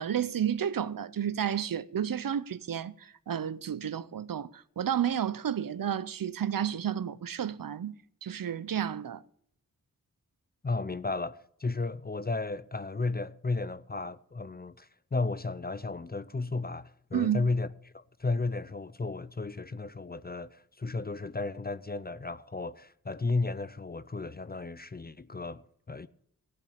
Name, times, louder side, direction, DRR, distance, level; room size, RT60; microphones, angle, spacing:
voice 1, 0.0-9.2 17.1-17.5, right 9 dB, 70° right, 0.6 m, -31 dB
voice 2, 10.6-26.1, left 3 dB, 25° left, 0.5 m, -34 dB
16.0 x 6.0 x 8.6 m
wide cardioid pair, 75°, 35 cm